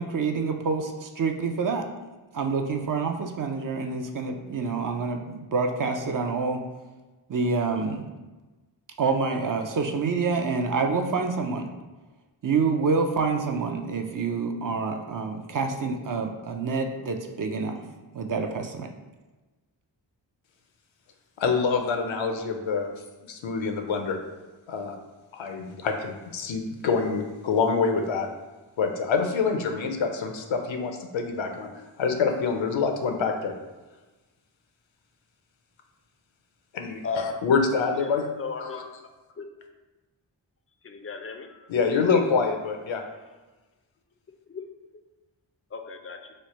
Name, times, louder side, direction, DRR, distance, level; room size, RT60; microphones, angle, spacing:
voice 1, 0.0-1.8 2.3-6.6 7.3-8.1 9.0-11.7 12.4-17.8 18.1-18.9, right 4 dB, 45° right, 4 dB, 0.5 m, -27 dB
voice 2, 21.4-22.9 23.3-24.2 24.7-24.9 25.3-28.3 28.8-31.7 32.0-33.5 36.7-38.3 38.6-38.8 41.7-43.0, left 5 dB, 75° left, 4 dB, 0.6 m, -26 dB
voice 3, 38.4-38.8 39.4-39.5 40.8-41.5 44.5-44.6 45.7-46.2, left 5 dB, 30° left, 6 dB, 0.4 m, -35 dB
3.1 x 2.1 x 4.2 m, 1.2 s
cardioid pair, 40°, 47 cm